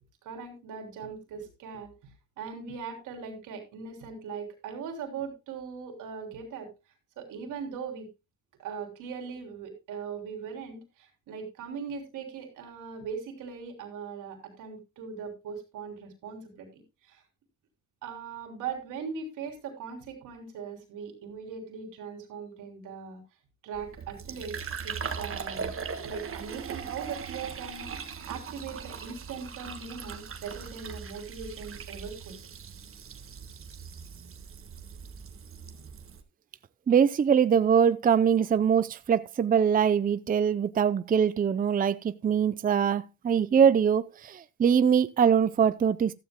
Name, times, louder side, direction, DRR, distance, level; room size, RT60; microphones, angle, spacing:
voice 1, 0.2-1.9 2.4-6.7 7.2-8.1 8.6-16.8 17.1-17.2 18.0-23.2 23.6-24.6 24.8-25.7 26.0-32.4, right 6 dB, 90° right, 3.4 m, -40 dB
Fill (with liquid), 23.7-36.2, right 6 dB, 45° right, 1.5 m, -40 dB
voice 2, 36.9-46.1, right 7 dB, 30° right, 0.5 m, -23 dB
14.5 x 13.0 x 2.2 m
cardioid pair, 90°, 30 cm